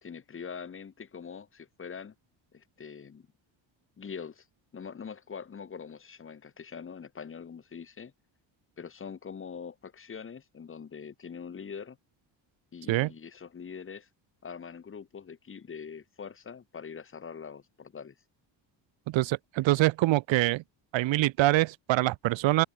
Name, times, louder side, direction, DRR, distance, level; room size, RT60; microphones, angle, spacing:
voice 1, 0.0-2.1 2.5-3.3 4.0-4.4 4.7-8.1 8.8-12.0 12.7-14.1 14.4-18.1, left 6 dB, 25° left, 1.5 m, -43 dB
voice 2, 19.1-20.6 20.9-22.6, right 17 dB, 70° right, 1.0 m, -25 dB
cardioid pair, 145°, 47 cm